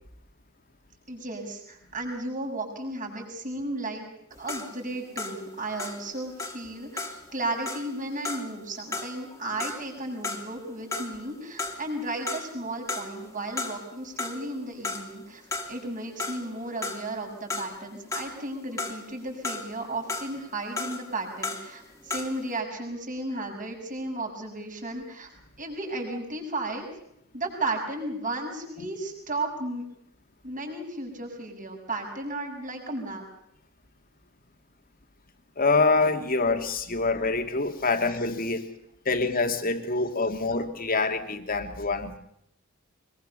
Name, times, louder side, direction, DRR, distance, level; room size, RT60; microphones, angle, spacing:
voice 1, 1.1-4.0 4.4-7.0 7.3-15.4 15.7-25.3 25.6-26.8 27.3-29.8 30.4-33.2, right 2 dB, 40° right, 1 dB, 7.2 m, -34 dB
sound 1, 4.3-11.3 11.6-12.6 12.9-13.9 14.2-22.5, left 3 dB, 15° left, 2.7 m, -36 dB
voice 2, 35.6-38.6 39.1-42.2, left 3 dB, 40° left, 6 dB, 2.6 m, -25 dB
24.0 x 22.5 x 6.9 m, 0.75 s
head